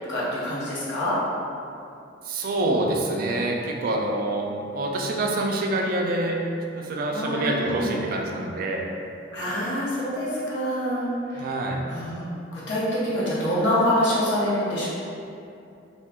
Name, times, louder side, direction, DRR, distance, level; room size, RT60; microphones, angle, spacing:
voice 1, 0.1-1.2 7.1-7.9 9.3-11.1 11.9-14.9, equal, 75° left, -8 dB, 0.8 m, -26 dB
voice 2, 2.2-6.4 6.8-8.9 11.3-11.8, right 2 dB, 50° right, 0 dB, 0.3 m, -26 dB
3.5 x 2.2 x 2.2 m, 2.6 s
head